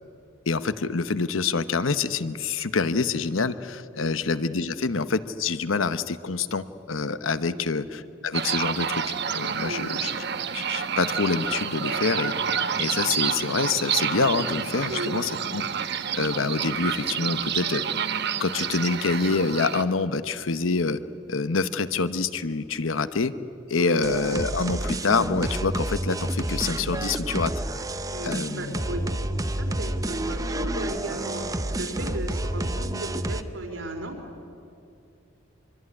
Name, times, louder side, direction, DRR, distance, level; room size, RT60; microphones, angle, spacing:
voice 1, 0.5-10.2 10.5-12.3 12.8-15.6 16.1-17.8 18.4-21.0 21.3-23.3 23.7-27.5 28.2-28.7, left 4 dB, 80° left, 13 dB, 0.9 m, -26 dB
voice 2, 7.4-7.8 9.6-9.9 14.9-15.1 23.8-24.0 28.1-29.1 29.6-31.5 31.7-34.2, right 2 dB, 80° right, 3 dB, 4.2 m, -35 dB
sound 1, 8.3-19.8, right 7 dB, 55° right, 1.0 m, -29 dB
sound 2, 24.0-33.4, right 1 dB, 20° right, 0.8 m, -29 dB
25.5 x 23.0 x 9.8 m, 2.6 s
head